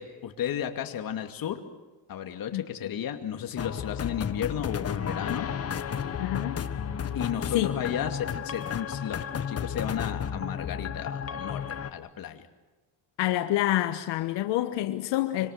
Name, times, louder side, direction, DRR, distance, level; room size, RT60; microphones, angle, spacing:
voice 1, 0.0-1.6 2.1-5.5 7.1-11.6 11.9-12.4, left 9 dB, 55° left, 2.6 m, -33 dB
sound 1, 3.6-11.9, left 7 dB, 35° left, 1.5 m, -33 dB
voice 2, 6.2-6.7 7.5-7.8 13.2-15.5, left 14 dB, 90° left, 1.3 m, -27 dB
26.5 x 25.5 x 6.7 m
cardioid pair, 125°, 42 cm